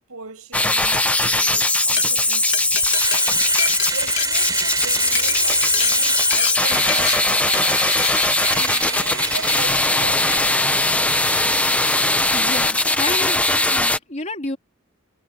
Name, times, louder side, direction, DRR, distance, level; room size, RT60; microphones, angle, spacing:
voice 1, 0.1-2.8 3.6-7.8 8.4-10.9, right 3 dB, 85° right, 7.0 m, -38 dB
sound 1, 0.5-14.0, left 2 dB, 5° left, 1.1 m, -19 dB
Glass, 1.7-2.0 2.5-4.8 5.1-5.3 5.7-5.9 6.3-6.5 6.9-7.1 7.5-7.7 8.0-8.3, left 10 dB, 55° left, 2.7 m, -26 dB
Domestic sounds home sounds, 2.2-2.3 2.6-10.4, right 4 dB, 20° right, 5.2 m, -29 dB
voice 2, 12.3-14.6, left 2 dB, 35° left, 3.6 m, -30 dB
head